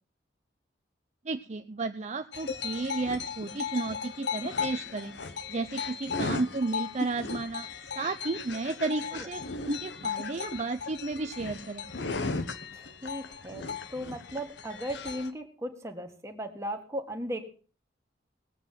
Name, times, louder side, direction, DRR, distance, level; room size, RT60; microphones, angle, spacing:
voice 1, 1.2-5.1 5.5-7.7 8.0-11.9, right 3 dB, 40° right, 8 dB, 0.6 m, -33 dB
sound 1, 2.3-15.3, left 5 dB, 75° left, 1.1 m, -36 dB
voice 2, 12.7-17.4, equal, 15° right, 4 dB, 1.8 m, -37 dB
18.5 x 8.5 x 5.7 m, 0.39 s
head